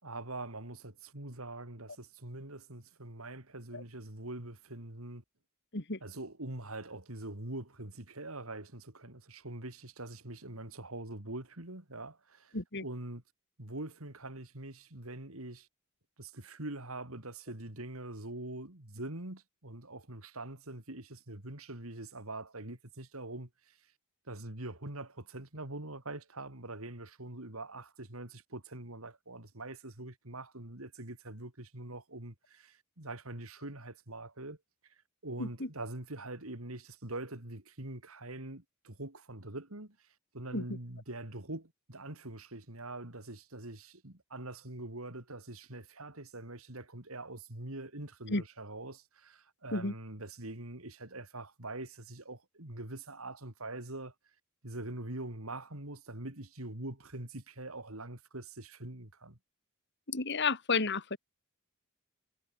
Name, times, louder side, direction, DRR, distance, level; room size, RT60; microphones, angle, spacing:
voice 1, 0.0-5.2 6.0-13.2 13.6-15.7 16.2-23.8 24.3-34.6 34.9-40.1 40.3-54.1 54.6-59.4, right 2 dB, 75° right, 3.7 m, -44 dB
voice 2, 12.5-12.8 40.5-40.6 48.3-48.4 49.7-49.9 60.1-61.2, left 4 dB, 55° left, 2.7 m, -31 dB
head